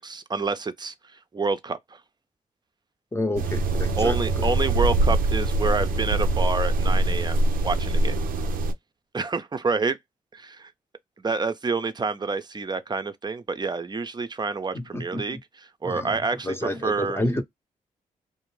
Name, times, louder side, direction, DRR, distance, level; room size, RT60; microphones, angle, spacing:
voice 1, 0.0-2.0 4.0-8.1 9.1-10.0 10.3-10.7 11.2-15.4 15.8-17.2, right 4 dB, 30° right, 0.5 m, -28 dB
voice 2, 3.1-4.5 14.7-15.4 15.8-16.2 16.4-17.4, left 1 dB, 15° left, 0.7 m, -29 dB
sound 1, 3.4-8.7, right 2 dB, 85° right, 0.5 m, -23 dB
2.5 x 2.0 x 3.1 m
cardioid pair, 60°, 14 cm